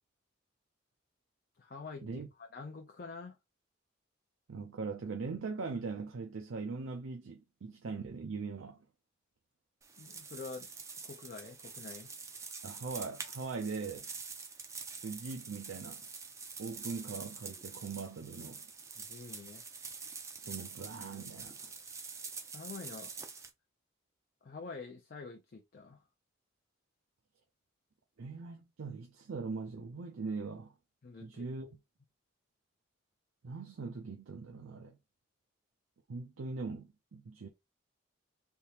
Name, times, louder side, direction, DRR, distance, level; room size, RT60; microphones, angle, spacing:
voice 1, 1.6-3.4 10.0-10.7 11.0-12.1 19.0-19.6 22.5-23.1 24.4-26.0 31.0-31.4, left 4 dB, 45° left, 0.4 m, -47 dB
voice 2, 4.5-8.8 12.6-14.1 15.0-16.0 16.6-18.6 20.4-21.7 28.2-30.7 31.2-31.8 33.4-35.0 36.1-37.5, right 4 dB, 85° right, 0.5 m, -41 dB
sound 1, 9.8-23.5, right 5 dB, 15° right, 0.4 m, -46 dB
3.5 x 2.8 x 2.8 m
head